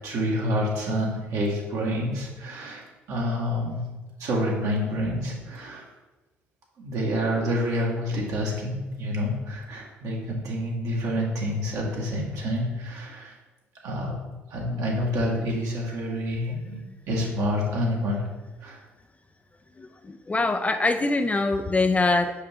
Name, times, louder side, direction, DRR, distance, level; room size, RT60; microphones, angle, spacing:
voice 1, 0.0-3.9 4.2-5.8 6.8-13.3 13.8-14.2 14.5-16.8 17.1-18.2 18.6-18.8, equal, 60° right, -3 dB, 1.7 m, -28 dB
voice 2, 19.8-22.3, left 3 dB, 20° left, 8 dB, 0.5 m, -24 dB
5.6 x 5.4 x 3.6 m, 1.2 s
hypercardioid pair, 50°, 6 cm